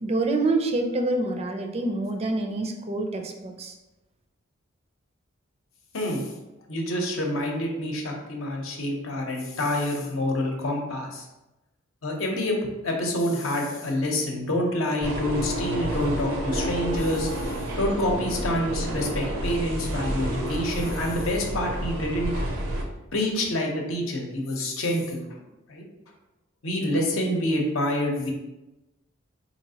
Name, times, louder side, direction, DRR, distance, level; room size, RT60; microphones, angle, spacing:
voice 1, 0.0-3.7, right 2 dB, 30° right, 4 dB, 0.4 m, -26 dB
voice 2, 5.9-6.2 6.7-11.3 12.0-12.6 12.8-17.4 17.8-22.3 23.1-25.4 25.7-25.8 26.6-28.3, left 1 dB, 80° left, 1 dB, 0.8 m, -27 dB
sound 1, 15.0-22.8, right 1 dB, 85° right, 0.6 m, -30 dB
4.0 x 2.9 x 2.8 m, 1.0 s
head